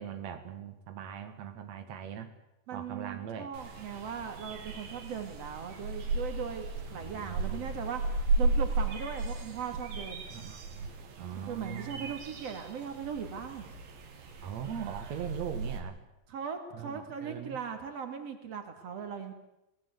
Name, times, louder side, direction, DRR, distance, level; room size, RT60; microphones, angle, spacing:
voice 1, 0.0-2.3 2.7-3.5 6.9-7.7 10.3-10.9 11.2-12.1 14.4-16.0 16.7-17.6, right 8 dB, 85° right, 8 dB, 1.5 m, -41 dB
voice 2, 2.7-8.0 8.4-10.2 11.3-13.7 16.3-19.3, right 7 dB, 40° right, 6 dB, 3.0 m, -39 dB
sound 1, 3.5-15.8, right 3 dB, 65° right, 5.2 m, -35 dB
25.5 x 19.0 x 8.3 m, 0.89 s
omnidirectional pair, 5.9 m